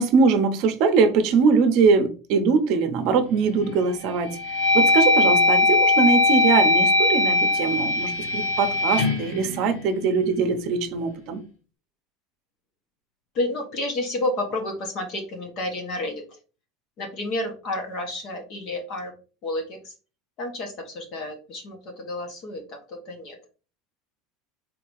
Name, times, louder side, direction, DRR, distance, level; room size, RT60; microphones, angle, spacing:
voice 1, 0.0-11.4, right 5 dB, 45° right, 0.8 m, -22 dB
sound 1, 3.3-3.7 4.2-10.4, left 2 dB, 80° left, 1.2 m, -21 dB
voice 2, 13.3-16.4 17.0-19.1 19.4-19.9 20.4-23.4, left 1 dB, 35° left, 1.1 m, -30 dB
3.8 x 2.9 x 4.7 m
cardioid pair, 175°, 0 cm